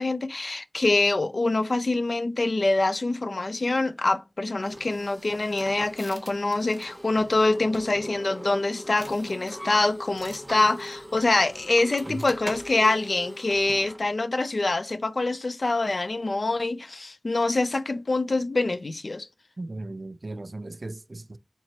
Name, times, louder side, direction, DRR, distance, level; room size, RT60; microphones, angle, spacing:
voice 1, 0.0-19.3, left 2 dB, 80° left, 0.4 m, -25 dB
sound 1, 4.6-14.0, equal, 10° right, 0.8 m, -40 dB
voice 2, 19.6-21.4, right 2 dB, 70° right, 0.4 m, -36 dB
4.5 x 3.0 x 2.9 m
wide cardioid pair, 45°, 0 cm